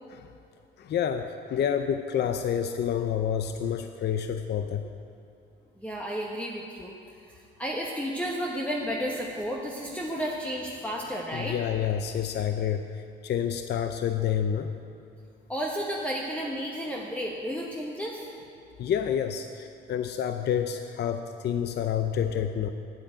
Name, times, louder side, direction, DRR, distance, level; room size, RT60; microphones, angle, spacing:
voice 1, 0.8-4.9 11.3-14.7 18.8-22.7, left 8 dB, 60° left, 8 dB, 0.6 m, -28 dB
voice 2, 5.8-7.0 7.2-11.6 15.5-18.2, equal, 5° left, -2 dB, 1.2 m, -32 dB
9.2 x 8.4 x 8.8 m, 2.5 s
cardioid pair, 90°, 20 cm